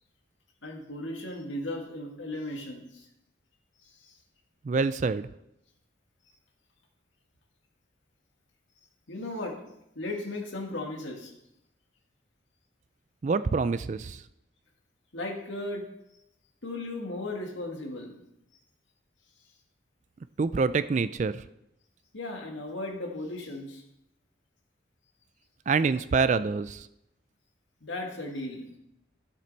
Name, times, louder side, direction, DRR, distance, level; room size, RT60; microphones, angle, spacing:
voice 1, 0.6-3.1 3.8-4.2 9.1-9.6 10.0-11.3 15.1-15.9 16.6-18.2 22.1-23.8 27.8-28.7, left 2 dB, 75° left, 2 dB, 1.8 m, -36 dB
voice 2, 4.6-5.3 13.2-14.2 20.4-21.4 25.7-26.9, right 4 dB, 40° right, 14 dB, 0.3 m, -26 dB
12.5 x 7.4 x 4.1 m, 0.83 s
head